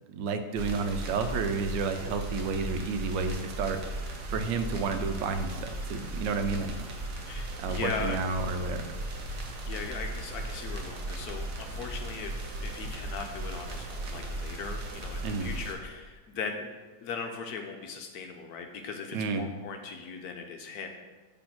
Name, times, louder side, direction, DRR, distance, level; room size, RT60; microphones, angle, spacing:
voice 1, 0.1-6.7 7.6-8.9 15.2-15.5 19.1-19.5, right 4 dB, 85° right, 8 dB, 1.3 m, -31 dB
sound 1, 0.6-15.7, right 1 dB, 60° right, 1.1 m, -37 dB
voice 2, 7.3-8.2 9.7-16.7 17.0-20.9, left 5 dB, 70° left, 4 dB, 1.0 m, -39 dB
6.2 x 3.4 x 5.9 m, 1.3 s
omnidirectional pair, 1.9 m